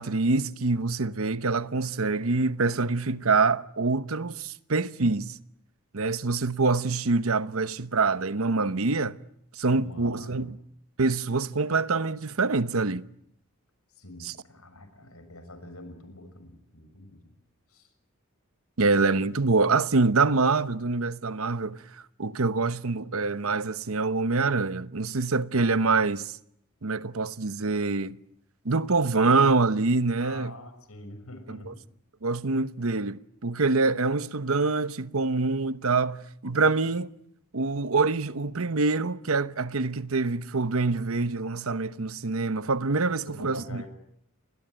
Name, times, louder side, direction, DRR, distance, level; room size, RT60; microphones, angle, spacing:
voice 1, 0.0-5.4 5.9-9.2 9.5-10.6 11.0-13.1 14.2-14.3 18.8-21.8 22.2-26.4 26.8-28.2 28.6-30.5 32.2-36.2 36.4-37.1 37.5-43.8, right 3 dB, 70° right, 1.0 m, -25 dB
voice 2, 9.7-10.5 13.9-17.3 17.7-17.9 30.2-31.8 43.2-43.9, left 1 dB, 80° left, 6.3 m, -45 dB
29.5 x 21.5 x 9.0 m
head